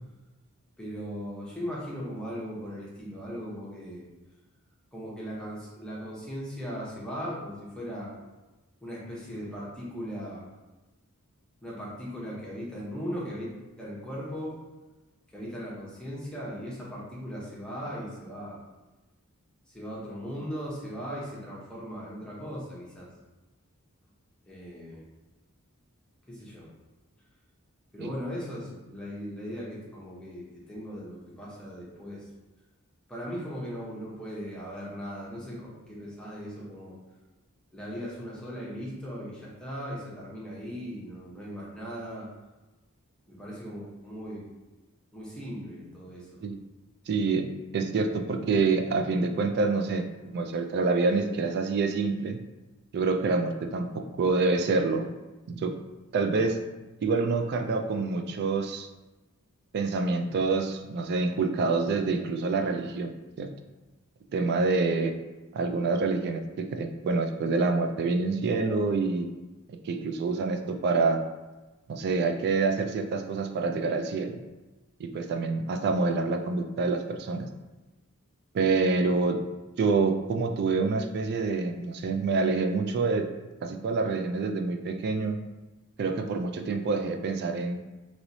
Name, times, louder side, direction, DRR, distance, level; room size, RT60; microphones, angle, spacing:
voice 1, 0.8-4.0 4.9-8.1 8.8-10.5 11.6-13.5 13.8-14.6 15.3-18.6 19.7-23.1 24.5-25.0 26.3-26.7 27.9-32.3 33.1-37.0 37.7-42.3 43.3-44.5 45.1-46.3, equal, 5° left, -7 dB, 0.8 m, -38 dB
voice 2, 47.1-47.5 47.7-50.1 50.3-52.4 52.9-55.1 55.5-55.8 56.1-56.6 57.0-58.9 59.7-63.5 64.3-65.1 65.5-69.3 69.7-71.2 71.9-74.4 75.0-77.5 78.5-79.4 79.8-83.3 83.6-85.4 86.0-87.8, right 4 dB, 50° right, 6 dB, 0.3 m, -27 dB
3.0 x 2.9 x 2.7 m, 1.1 s
head